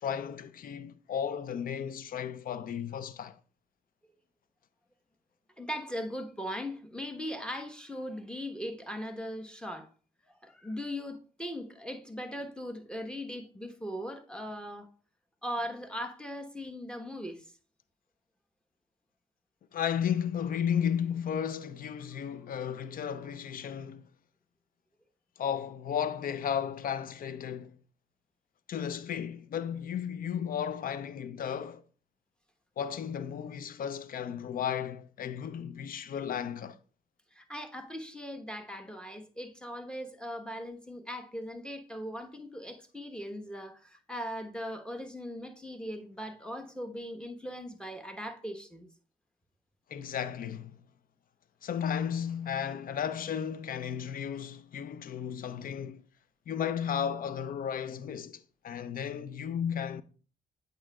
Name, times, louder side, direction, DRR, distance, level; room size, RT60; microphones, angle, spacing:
voice 1, 0.0-3.4 19.7-24.1 25.4-27.8 28.7-31.8 32.8-36.8 49.9-50.8 51.6-56.0 56.5-60.0, left 8 dB, 60° left, 0.5 m, -34 dB
voice 2, 5.6-9.9 10.4-14.9 15.4-17.5 37.3-48.9, equal, 5° left, 1.1 m, -39 dB
8.5 x 5.1 x 2.3 m
supercardioid pair, 55°, 17 cm